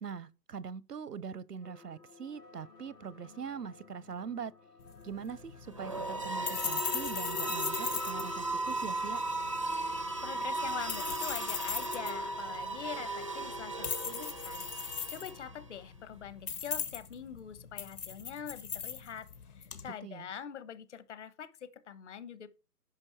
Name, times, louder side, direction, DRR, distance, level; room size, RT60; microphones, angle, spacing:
voice 1, 0.0-4.5 5.0-9.2 19.8-20.3, right 6 dB, 85° right, 0.9 m, -42 dB
sound 1, 1.6-8.7, left 5 dB, 90° left, 2.9 m, -54 dB
sound 2, 4.8-19.9, left 7 dB, 70° left, 1.8 m, -40 dB
sound 3, 5.7-15.6, right 2 dB, 25° right, 0.4 m, -36 dB
voice 2, 9.9-19.3 19.6-22.5, left 8 dB, 50° left, 1.1 m, -44 dB
9.8 x 5.9 x 4.5 m
hypercardioid pair, 145°, 47 cm